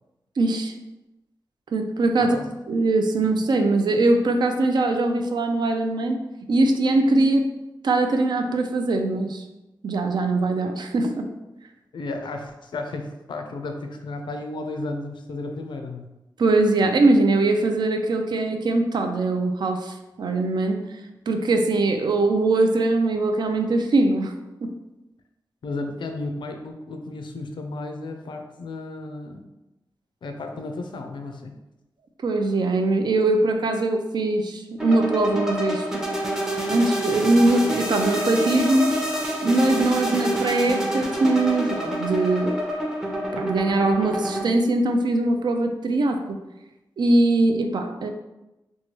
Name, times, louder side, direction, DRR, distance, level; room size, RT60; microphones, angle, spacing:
voice 1, 0.4-0.7 1.7-2.4 2.7-6.2 6.5-7.5 7.8-9.4 9.8-11.3 16.4-20.8 21.3-24.3 24.6-24.8 32.2-36.0 36.7-38.9 39.4-42.5 43.3-46.4 47.0-48.1, right 2 dB, 65° right, 5 dB, 0.3 m, -21 dB
voice 2, 11.9-16.1 25.6-29.4 30.2-31.6, left 2 dB, 80° left, 5 dB, 0.4 m, -33 dB
sound 1, 34.8-44.5, equal, 5° right, 0.5 m, -27 dB
3.0 x 2.2 x 2.9 m, 0.98 s
wide cardioid pair, 85°, 8 cm